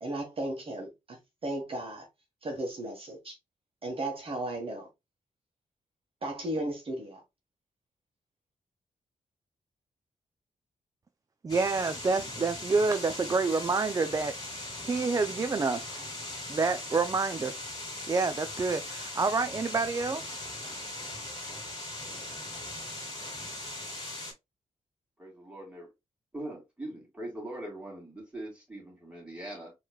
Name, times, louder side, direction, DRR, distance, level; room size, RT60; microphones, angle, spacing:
voice 1, 0.0-1.2 1.4-2.1 2.4-3.3 3.8-4.9 6.2-7.2, right 1 dB, 45° right, 1.4 m, -35 dB
voice 2, 11.4-14.3 14.9-15.9 16.5-17.5 18.1-20.2, right 4 dB, 25° right, 0.4 m, -28 dB
sound 1, 11.5-24.3, left 2 dB, 35° left, 2.6 m, -39 dB
voice 3, 25.2-25.9 26.3-29.7, right 1 dB, 10° right, 2.5 m, -41 dB
4.5 x 3.2 x 2.2 m
wide cardioid pair, 105°, 13 cm